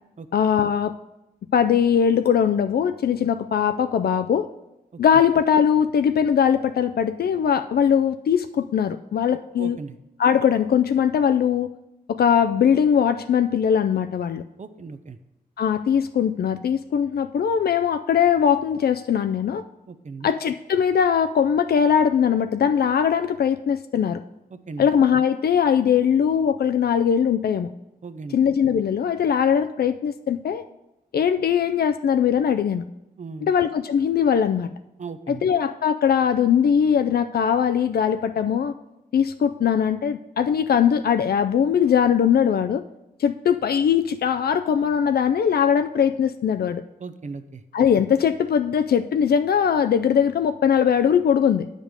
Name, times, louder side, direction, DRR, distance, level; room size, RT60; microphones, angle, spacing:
voice 1, 0.3-0.9 1.5-4.5 5.0-9.8 10.2-11.7 12.1-14.4 15.6-19.6 20.2-24.2 24.8-27.7 28.3-30.6 31.1-32.8 33.4-34.7 35.3-38.7 39.1-42.8 43.2-46.8 47.7-51.7, left 8 dB, 75° left, 9 dB, 0.4 m, -20 dB
voice 2, 9.3-10.0 14.6-15.2 19.9-20.3 24.5-24.9 28.0-28.4 33.2-33.5 35.0-35.5 47.0-47.6, right 4 dB, 50° right, 10 dB, 0.7 m, -37 dB
8.9 x 5.2 x 6.3 m, 0.91 s
wide cardioid pair, 90°, 16 cm